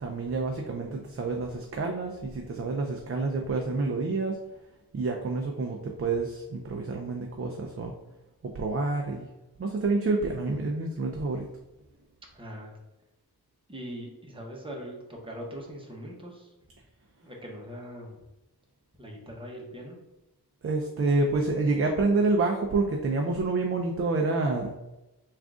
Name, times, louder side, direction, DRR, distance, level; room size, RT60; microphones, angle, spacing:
voice 1, 0.0-4.4 4.9-7.9 8.4-9.3 9.6-11.4 20.6-24.7, right 3 dB, 35° right, 2 dB, 0.4 m, -28 dB
voice 2, 12.3-12.7 13.7-16.5 17.2-18.2 19.0-20.0, equal, 15° right, -1 dB, 0.8 m, -41 dB
3.5 x 2.5 x 3.6 m, 0.98 s
wide cardioid pair, 90°, 39 cm